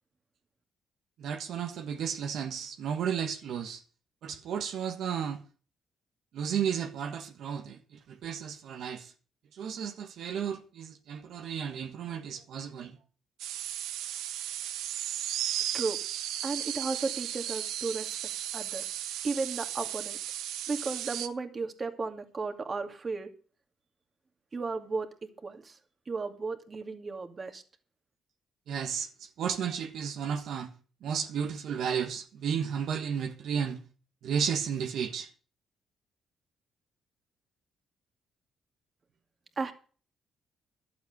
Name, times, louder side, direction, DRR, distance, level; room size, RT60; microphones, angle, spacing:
voice 1, 1.2-3.8 4.2-5.4 6.3-7.8 8.1-9.1 9.5-13.0 28.7-30.7 31.0-33.8 34.2-35.3, right 7 dB, 75° right, 1.5 m, -33 dB
sound 1, 13.4-21.3, right 11 dB, 90° right, 1.0 m, -35 dB
voice 2, 16.4-18.1 18.5-19.0 19.2-20.2 20.7-23.3 24.5-25.1 25.4-25.8 26.1-27.6 39.6-39.7, right 4 dB, 35° right, 2.4 m, -34 dB
12.0 x 8.0 x 8.0 m
cardioid pair, 90°, 0 cm